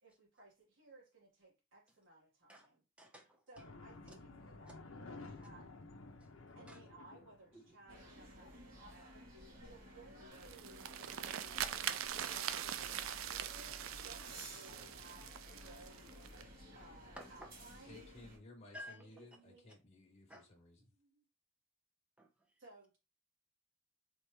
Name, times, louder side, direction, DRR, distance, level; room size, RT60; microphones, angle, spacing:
voice 1, 0.0-2.8 3.5-5.7 6.5-11.0 11.8-16.1 16.7-18.1 18.9-19.7 20.0-20.2 20.9-21.2 22.6-23.0, right 2 dB, 65° right, 1.7 m, -60 dB
voice 2, 3.0-3.4 6.2-6.3 6.7-6.8 7.5-7.8 11.4-11.8 12.9-13.1 17.1-17.5 18.7-19.1 20.3-20.5 22.2-22.6, equal, 5° right, 0.9 m, -54 dB
sound 1, 3.6-8.1, left 3 dB, 80° left, 0.7 m, -53 dB
sound 2, 7.9-18.4, equal, 45° right, 2.4 m, -54 dB
sound 3, 10.3-16.4, right 10 dB, 85° right, 0.4 m, -42 dB
voice 3, 17.8-20.8, left 2 dB, 30° left, 0.7 m, -58 dB
4.2 x 3.4 x 3.1 m
head